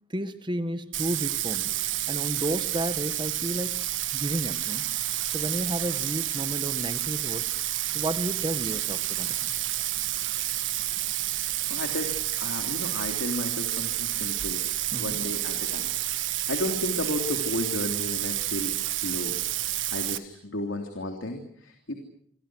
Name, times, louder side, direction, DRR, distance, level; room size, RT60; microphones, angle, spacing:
voice 1, 0.1-1.7 2.1-4.9 5.3-7.5 7.9-9.5 14.9-15.2, right 1 dB, 25° right, 11 dB, 1.5 m, -32 dB
Bathtub (filling or washing), 0.9-20.2, right 14 dB, 75° right, 1.4 m, -30 dB
voice 2, 11.3-14.6 15.0-15.9 16.1-18.7 19.0-19.3 19.9-21.9, left 1 dB, 85° left, 4 dB, 3.2 m, -33 dB
28.0 x 24.0 x 6.3 m, 0.65 s
head